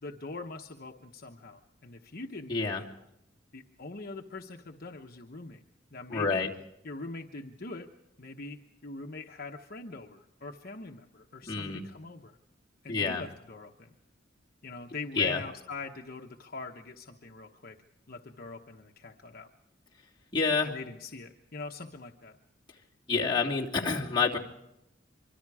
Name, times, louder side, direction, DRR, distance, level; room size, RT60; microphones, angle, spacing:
voice 1, 0.0-2.8 3.5-5.6 5.9-6.5 6.8-7.9 8.2-12.4 12.8-13.9 14.6-17.8 18.1-19.5 20.6-22.4, left 3 dB, 50° left, 2 dB, 1.1 m, -43 dB
voice 2, 2.5-2.8 6.1-6.5 11.5-11.8 12.9-13.2 15.2-15.4 20.3-20.7 23.1-24.4, left 4 dB, 25° left, -3 dB, 2.8 m, -28 dB
25.0 x 24.5 x 4.9 m, 0.84 s
head